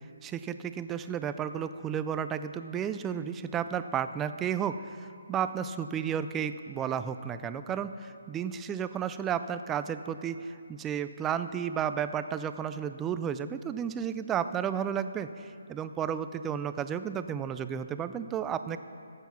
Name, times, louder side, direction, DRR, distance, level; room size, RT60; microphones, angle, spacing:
voice 1, 0.2-18.8, right 8 dB, 10° right, 11 dB, 0.3 m, -33 dB
14.0 x 8.0 x 5.8 m, 2.4 s
hypercardioid pair, 160°, 0 cm